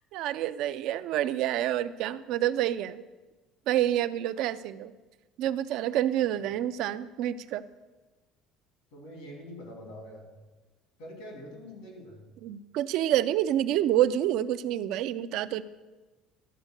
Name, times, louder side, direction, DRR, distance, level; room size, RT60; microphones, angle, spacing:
voice 1, 0.1-3.0 3.7-4.9 5.4-7.6 12.4-15.6, right 12 dB, 65° right, 13 dB, 0.4 m, -28 dB
voice 2, 8.9-10.3 11.0-12.2, equal, 90° left, 1 dB, 2.8 m, -44 dB
12.0 x 4.5 x 6.4 m, 1.2 s
cardioid pair, 145°, 0 cm